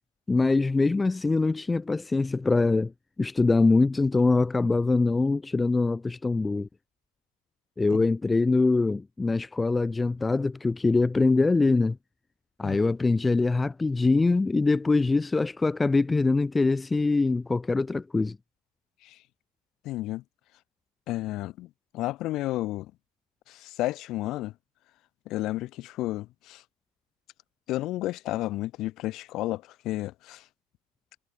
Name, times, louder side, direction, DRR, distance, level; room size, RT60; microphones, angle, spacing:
voice 1, 0.3-2.9 3.2-6.7 7.8-12.0 12.6-18.4, left 3 dB, 10° left, 0.4 m, -23 dB
voice 2, 19.8-20.2 21.1-22.9 23.5-24.5 25.3-26.6 27.7-30.4, left 16 dB, 40° left, 1.2 m, -32 dB
figure-of-eight pair, 80°, 0 cm